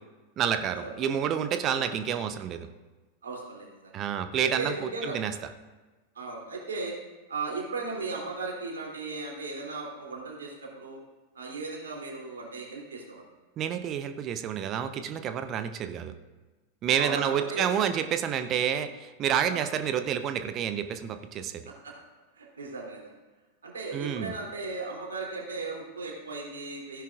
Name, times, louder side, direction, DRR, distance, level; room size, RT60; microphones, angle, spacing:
voice 1, 0.4-2.7 3.9-4.7 5.0-5.3 13.6-16.1 16.8-21.6 23.9-24.3, right 9 dB, 30° right, 9 dB, 0.7 m, -29 dB
voice 2, 3.2-4.0 4.6-5.2 6.1-7.0 7.3-11.0 11.3-13.3 17.0-17.7 19.4-19.6 21.6-21.9 22.3-23.1 23.6-27.0, right 3 dB, 70° right, -1 dB, 3.0 m, -36 dB
16.0 x 10.5 x 2.5 m, 1.2 s
figure-of-eight pair, 90°, 0 cm